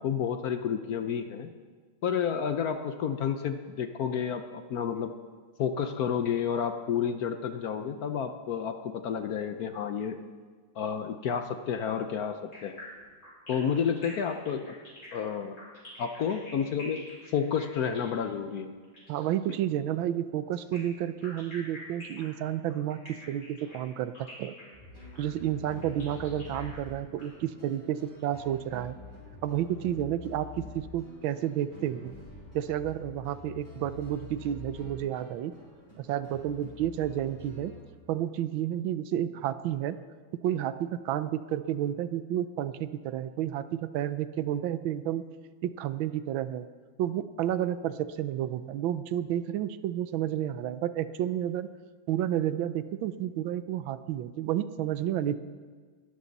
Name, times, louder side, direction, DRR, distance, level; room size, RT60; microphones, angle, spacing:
voice 1, 0.0-1.5 2.0-5.1 5.6-10.2 10.7-12.8 13.5-14.7 15.1-15.6 16.0-17.0 17.3-18.7, left 7 dB, 65° left, 8 dB, 1.0 m, -30 dB
sound 1, 12.5-19.3 20.5-27.2, left 1 dB, 45° left, 5.6 m, -48 dB
voice 2, 19.1-24.1 24.4-24.5 25.2-29.0 29.4-32.1 32.5-35.5 36.0-37.7 38.1-40.0 40.4-45.3 45.6-46.7 47.0-51.7 52.1-55.4, right 11 dB, 85° right, 13 dB, 1.4 m, -31 dB
sound 2, 24.7-37.8, left 2 dB, 10° left, 5.6 m, -47 dB
21.0 x 13.0 x 4.1 m, 1.5 s
omnidirectional pair, 2.1 m